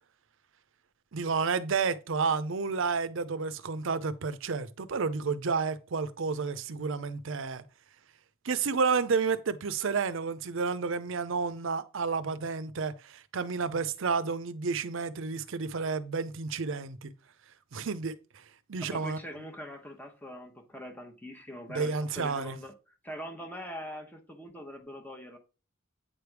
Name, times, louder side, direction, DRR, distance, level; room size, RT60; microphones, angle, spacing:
voice 1, 1.1-7.6 8.4-17.1 17.7-18.1 18.7-19.2 21.7-22.6, right 5 dB, 65° right, 0.6 m, -31 dB
voice 2, 18.8-22.7 23.0-25.4, equal, 10° left, 0.9 m, -42 dB
8.7 x 3.4 x 4.6 m
head